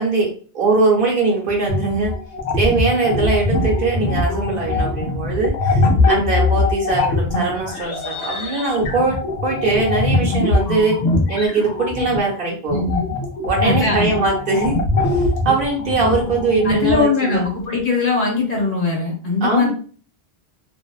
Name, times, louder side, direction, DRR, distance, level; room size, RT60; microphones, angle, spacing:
voice 1, 0.0-2.1 2.5-11.0 11.3-12.8 13.4-14.8 15.0-17.4 19.4-19.7, right 3 dB, 60° right, -1 dB, 0.8 m, -21 dB
sound 1, 1.7-12.2 12.7-17.0, left 2 dB, 80° left, 0.8 m, -21 dB
voice 2, 12.7-13.0 13.6-14.1 16.6-19.7, left 4 dB, 55° left, -1 dB, 1.2 m, -20 dB
2.5 x 2.1 x 2.3 m, 0.41 s
omnidirectional pair, 1.1 m